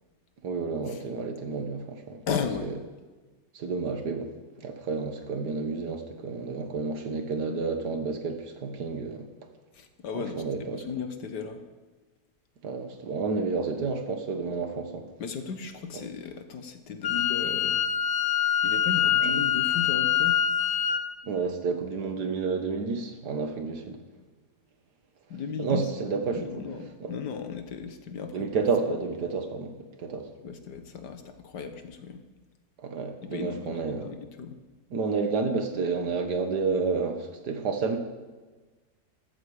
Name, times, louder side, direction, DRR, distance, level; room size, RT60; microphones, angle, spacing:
voice 1, 0.4-2.2 3.5-4.3 4.6-9.3 10.1-10.8 12.6-15.0 21.2-24.0 25.6-26.5 27.0-27.1 28.3-30.3 32.8-34.1 34.9-38.0, right 4 dB, 80° right, 6 dB, 2.0 m, -30 dB
voice 2, 2.3-2.7 9.7-11.6 15.2-17.9 18.6-20.4 25.3-25.9 26.3-28.5 30.4-32.2 33.2-34.6, left 6 dB, 90° left, 8 dB, 1.8 m, -35 dB
Wind instrument woodwind instrument, 17.0-21.0, left 10 dB, 55° left, 0.9 m, -25 dB
14.0 x 13.5 x 5.0 m, 1.3 s
omnidirectional pair, 1.7 m